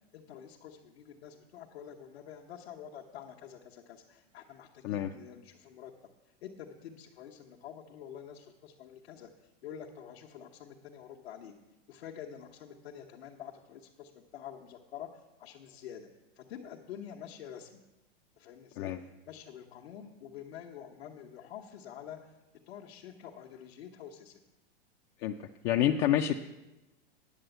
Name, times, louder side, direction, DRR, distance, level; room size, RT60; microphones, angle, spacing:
voice 1, 0.1-5.9 6.2-11.5 11.9-16.1 16.4-17.8 18.4-22.3 22.7-24.4, left 9 dB, 85° left, 0 dB, 1.2 m, -47 dB
voice 2, 25.6-26.3, left 11 dB, 35° left, 4 dB, 0.4 m, -27 dB
9.6 x 7.1 x 7.8 m, 1.0 s
supercardioid pair, 155°, 30 cm